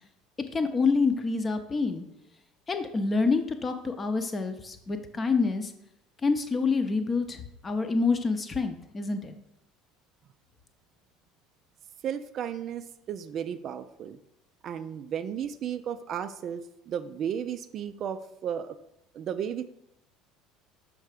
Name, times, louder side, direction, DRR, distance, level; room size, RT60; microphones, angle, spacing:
voice 1, 0.5-2.0 2.7-5.7 6.2-9.3, left 4 dB, 25° left, 8 dB, 0.7 m, -27 dB
voice 2, 12.0-14.2 14.6-18.8 19.1-19.6, right 8 dB, 45° right, 11 dB, 0.3 m, -34 dB
6.4 x 3.4 x 4.9 m, 0.81 s
figure-of-eight pair, 65°, 0 cm